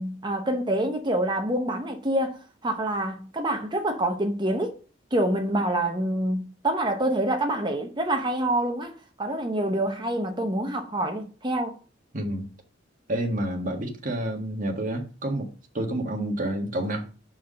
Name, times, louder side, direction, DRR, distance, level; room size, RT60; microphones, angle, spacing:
voice 1, 0.0-4.8 5.1-11.8, right 1 dB, 25° right, 0.8 m, -26 dB
voice 2, 12.1-12.5 13.1-15.5 15.7-17.0, right 1 dB, 45° right, 1.5 m, -29 dB
5.6 x 4.7 x 6.2 m
head